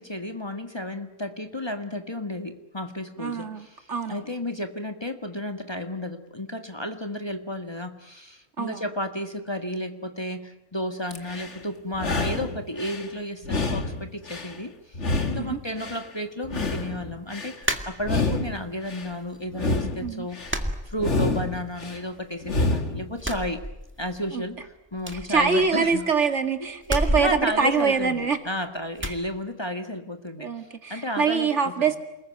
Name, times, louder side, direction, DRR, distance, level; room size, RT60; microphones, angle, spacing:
voice 1, 0.0-23.6 24.0-26.1 26.9-31.9, left 1 dB, 20° left, 6 dB, 1.8 m, -33 dB
voice 2, 3.2-4.3 8.6-8.8 15.3-15.6 20.0-20.3 24.3-24.4 25.3-28.4 29.0-29.1 30.4-32.0, right 5 dB, 65° right, 7 dB, 2.4 m, -24 dB
sound 1, 11.1-11.6 11.9-13.1 13.4-14.6 14.9-16.1 16.4-17.6 18.0-19.1 19.5-20.6 21.0-22.0 22.4-23.1, left 3 dB, 65° left, 2.3 m, -28 dB
sound 2, 17.6-18.5 18.9-19.6 19.9-20.0 20.5-21.6 21.9-22.7 23.1-24.3 24.5-24.6 25.0-26.1 26.8-28.5 29.0-29.3, equal, 10° right, 2.0 m, -31 dB
29.0 x 20.5 x 9.4 m, 0.93 s
omnidirectional pair, 1.3 m